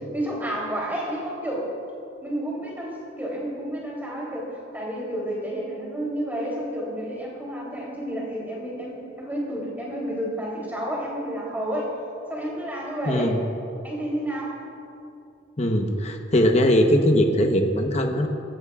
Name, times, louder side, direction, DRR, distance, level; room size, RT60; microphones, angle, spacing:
voice 1, 0.1-1.7 2.2-12.0 12.3-13.4 13.8-14.6, equal, 10° right, -4 dB, 3.2 m, -30 dB
voice 2, 13.1-13.4 15.6-18.3, equal, 35° left, 4 dB, 1.0 m, -20 dB
21.5 x 15.5 x 2.4 m, 2.6 s
head